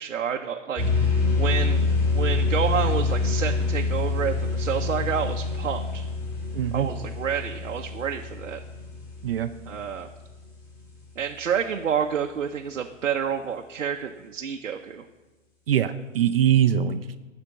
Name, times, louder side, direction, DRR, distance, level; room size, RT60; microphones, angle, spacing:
voice 1, 0.0-1.8 2.1-6.1 6.7-8.6 9.7-10.1 11.2-15.0, right 7 dB, 80° right, 3 dB, 0.8 m, -29 dB
sound 1, 0.8-10.3, left 3 dB, 25° left, 3.5 m, -26 dB
voice 2, 6.5-6.9 9.2-9.5 15.7-17.1, right 10 dB, 50° right, 9 dB, 0.5 m, -22 dB
12.5 x 4.4 x 7.2 m, 1.2 s
hypercardioid pair, 140°, 39 cm